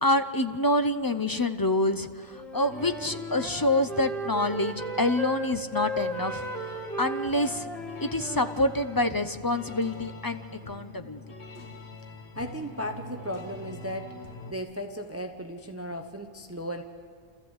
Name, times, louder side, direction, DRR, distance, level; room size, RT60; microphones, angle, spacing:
voice 1, 0.0-6.4 7.0-7.7 8.0-10.4 10.7-11.2, left 1 dB, 25° left, 9 dB, 0.5 m, -27 dB
Wind instrument woodwind instrument, 2.3-9.1, equal, ahead, 1.6 m, -36 dB
sound 1, 2.6-14.5, left 3 dB, 90° left, 1.6 m, -44 dB
voice 2, 12.4-14.1 14.5-16.8, equal, 15° right, 5 dB, 0.8 m, -35 dB
28.0 x 14.0 x 8.0 m, 2.2 s
omnidirectional pair, 1.1 m